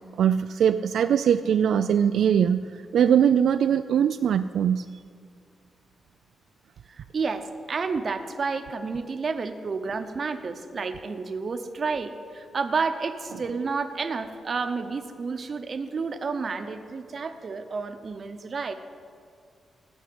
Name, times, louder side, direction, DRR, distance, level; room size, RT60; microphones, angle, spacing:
voice 1, 0.2-4.9, right 8 dB, 70° right, 10 dB, 0.3 m, -21 dB
voice 2, 7.0-18.7, right 4 dB, 35° right, 8 dB, 0.9 m, -30 dB
17.0 x 6.4 x 9.6 m, 2.2 s
wide cardioid pair, 165°, 0 cm